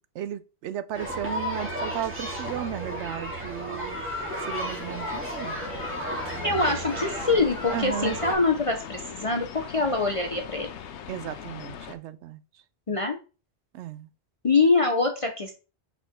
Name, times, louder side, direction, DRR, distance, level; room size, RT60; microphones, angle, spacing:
voice 1, 0.1-4.0 4.5-5.6 7.7-8.2 11.1-12.4 13.7-14.1, right 10 dB, 90° right, 0.9 m, -34 dB
sound 1, 0.9-8.3, equal, 10° right, 2.1 m, -33 dB
sound 2, 4.7-12.0, left 8 dB, 80° left, 1.0 m, -41 dB
voice 2, 6.4-10.7 12.9-13.2 14.4-15.5, left 3 dB, 35° left, 0.7 m, -24 dB
5.3 x 5.1 x 3.6 m
omnidirectional pair, 1.1 m